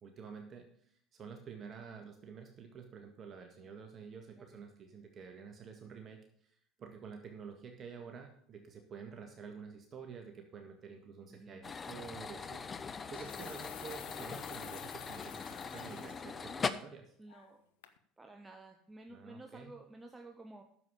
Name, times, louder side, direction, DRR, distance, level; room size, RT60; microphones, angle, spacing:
voice 1, 0.0-0.7 1.1-17.1 19.1-19.7, right 6 dB, 40° right, 4 dB, 1.7 m, -49 dB
voice 2, 11.3-11.6 17.2-17.6 18.2-20.6, right 2 dB, 15° right, 4 dB, 1.2 m, -52 dB
sound 1, 11.6-16.7, left 5 dB, 30° left, 0.8 m, -41 dB
sound 2, 11.7-11.9 12.9-16.2 16.7-16.8 17.3-17.6 17.8-18.0, left 11 dB, 80° left, 0.9 m, -51 dB
9.5 x 7.2 x 6.9 m, 0.64 s
hypercardioid pair, 75°, 0 cm